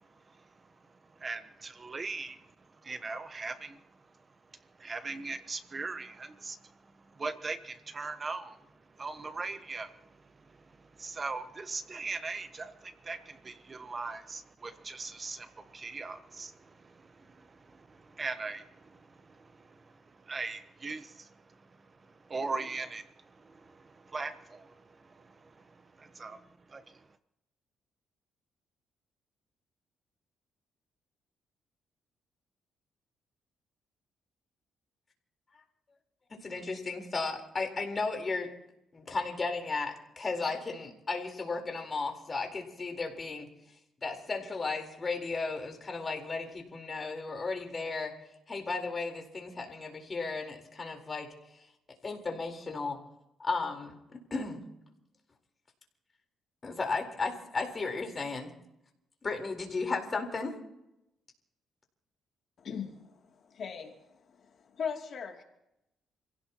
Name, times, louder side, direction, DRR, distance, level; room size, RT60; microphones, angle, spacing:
voice 1, 1.2-2.4 2.8-3.8 4.8-6.6 7.2-8.6 9.0-9.9 11.0-16.6 17.7-18.7 20.3-21.3 22.3-23.1 23.4-23.8 24.1-24.7 25.2-25.3 26.0-26.4 26.7-26.8, right 3 dB, 30° right, 10 dB, 1.1 m, -39 dB
voice 2, 36.3-38.5 38.9-43.5 44.0-48.1 48.5-51.3 52.0-53.0 53.4-54.0 54.3-54.6 56.6-58.5 59.2-60.6, left 3 dB, 30° left, 3 dB, 4.1 m, -34 dB
voice 3, 62.6-65.4, left 6 dB, 55° left, 2 dB, 2.8 m, -40 dB
29.0 x 16.5 x 3.0 m, 0.86 s
cardioid pair, 90°, 0 cm